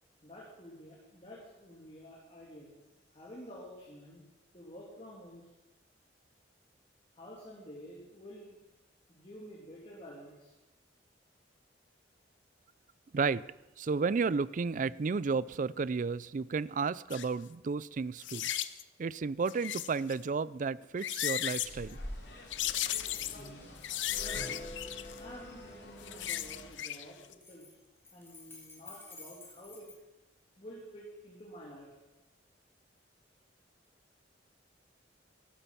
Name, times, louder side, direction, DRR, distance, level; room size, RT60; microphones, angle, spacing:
voice 1, 0.2-2.7 3.1-4.2 4.5-5.5 7.1-8.6 9.1-10.5 18.9-19.0 24.1-24.6 25.2-27.7 28.1-29.9 30.6-31.9, equal, 30° left, -4 dB, 2.8 m, -50 dB
voice 2, 13.1-13.5 13.8-18.5 19.0-22.0, right 4 dB, 45° right, 19 dB, 0.4 m, -32 dB
sound 1, 17.1-17.3 18.2-18.8 19.5-20.1 20.8-21.7 22.5-23.5 23.8-25.2 25.9-27.0 27.3-27.4, left 12 dB, 90° left, 0.6 m, -35 dB
sound 2, 21.6-26.7, left 1 dB, 65° left, 3.1 m, -46 dB
sound 3, 23.2-23.7 24.2-26.1 26.9-29.9, left 2 dB, 10° left, 3.1 m, -53 dB
14.0 x 12.0 x 5.7 m, 1.0 s
head